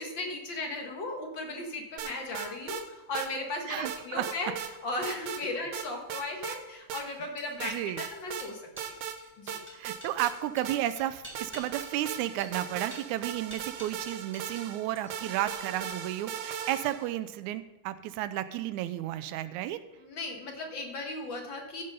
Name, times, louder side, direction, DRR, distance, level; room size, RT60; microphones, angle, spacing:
voice 1, 0.0-4.5 4.8-8.6 9.4-9.6 20.0-21.8, left 2 dB, 50° left, 2 dB, 1.6 m, -36 dB
sound 1, 2.0-2.8 3.1-3.3 3.8-4.7 5.0-5.4 5.7-6.6 6.9-7.0 7.6-8.5 8.8-9.2 9.5-11.0 11.3-17.1, right 8 dB, 65° right, 1.5 m, -38 dB
voice 2, 3.7-4.3 7.6-8.0 9.7-19.8, right 13 dB, 90° right, 13 dB, 2.0 m, -33 dB
sound 2, 6.2-14.7 15.0-15.4, equal, 5° right, 1.2 m, -50 dB
14.5 x 5.5 x 5.3 m, 1.0 s
omnidirectional pair, 3.4 m